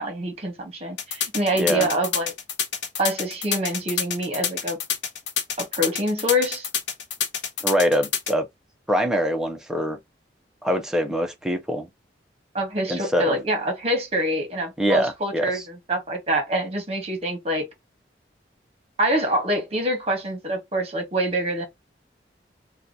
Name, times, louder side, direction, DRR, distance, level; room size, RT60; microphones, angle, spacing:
voice 1, 0.0-2.3 3.0-4.8 5.6-6.7 12.5-17.7 19.0-21.7, equal, 35° right, 1.1 m, -25 dB
sound 1, 1.0-8.3, left 7 dB, 85° left, 0.8 m, -27 dB
voice 2, 1.6-1.9 7.6-8.5 8.9-10.0 10.6-11.9 12.9-13.4 14.8-15.6, equal, 5° right, 0.5 m, -23 dB
2.8 x 2.3 x 3.8 m
head